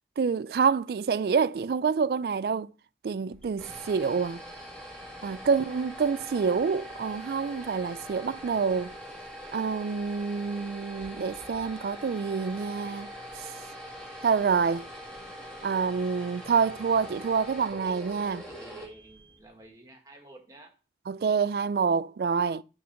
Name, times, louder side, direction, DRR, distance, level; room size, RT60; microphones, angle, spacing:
voice 1, 0.2-2.7 3.0-4.4 5.2-8.9 9.5-13.1 14.2-14.9 15.6-18.4 21.1-22.6, right 5 dB, 60° right, 0.3 m, -27 dB
sound 1, 3.3-19.5, equal, 5° left, 1.9 m, -43 dB
voice 2, 18.4-20.7, right 1 dB, 20° right, 1.6 m, -51 dB
8.5 x 4.0 x 5.8 m
head